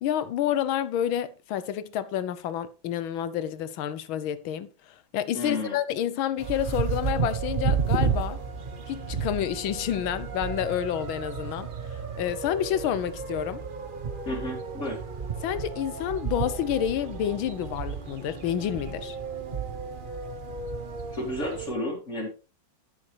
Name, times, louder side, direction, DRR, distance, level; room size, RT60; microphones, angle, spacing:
voice 1, 0.0-8.4 8.9-11.7 12.2-13.6 15.4-19.2, left 10 dB, 85° left, 1.6 m, -29 dB
voice 2, 5.3-5.8 14.3-15.0 21.1-22.3, left 1 dB, 40° left, 2.6 m, -32 dB
sound 1, 6.4-21.7, right 6 dB, 40° right, 0.7 m, -32 dB
9.8 x 9.8 x 3.3 m
omnidirectional pair, 2.2 m